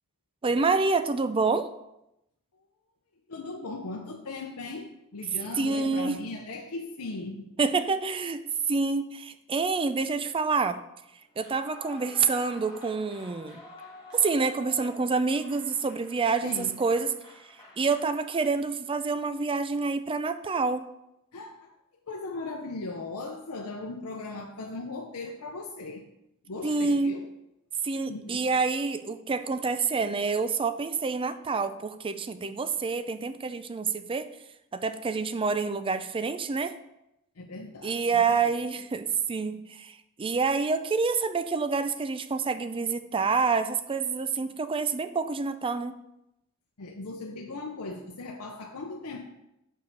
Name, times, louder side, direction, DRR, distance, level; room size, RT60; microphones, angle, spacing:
voice 1, 0.4-1.7 5.6-6.2 7.6-8.4 8.7-10.8 11.4-13.6 14.1-17.1 17.8-20.9 26.6-27.2 27.8-34.3 34.7-36.8 37.8-45.9, right 4 dB, 25° right, 12 dB, 0.4 m, -27 dB
voice 2, 3.3-4.9 5.1-7.5 16.4-16.7 21.3-21.7 22.1-26.0 26.4-27.2 28.1-28.4 37.4-38.5 46.8-49.2, left 3 dB, 90° left, 1 dB, 0.7 m, -38 dB
Clapping / Cheering / Applause, 11.3-18.7, left 1 dB, 20° left, 2.0 m, -49 dB
6.4 x 5.4 x 5.2 m, 0.87 s
head